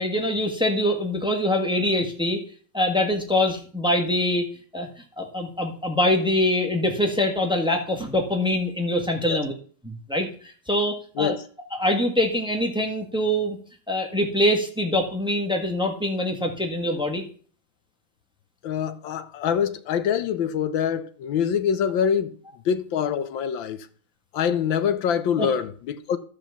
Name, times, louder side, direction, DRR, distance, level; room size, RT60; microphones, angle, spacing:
voice 1, 0.0-2.4 2.7-4.4 4.7-4.9 5.2-9.5 9.8-11.3 11.7-13.6 13.9-17.2 25.4-25.5, left 1 dB, 5° right, 1.4 m, -24 dB
voice 2, 18.6-22.4 22.6-23.9 24.3-26.2, left 8 dB, 70° left, 1.4 m, -25 dB
12.5 x 5.1 x 7.1 m
omnidirectional pair, 2.3 m